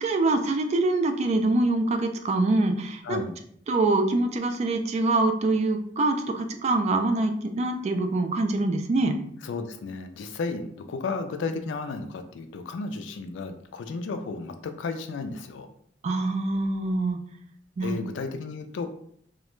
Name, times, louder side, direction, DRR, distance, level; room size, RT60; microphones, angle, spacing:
voice 1, 0.0-3.2 3.7-9.2 16.0-17.2 17.8-18.0, right 2 dB, 40° right, 6 dB, 0.3 m, -24 dB
voice 2, 3.0-3.4 9.4-15.7 17.8-18.9, left 4 dB, 90° left, 7 dB, 0.3 m, -33 dB
2.4 x 2.1 x 3.0 m, 0.64 s
head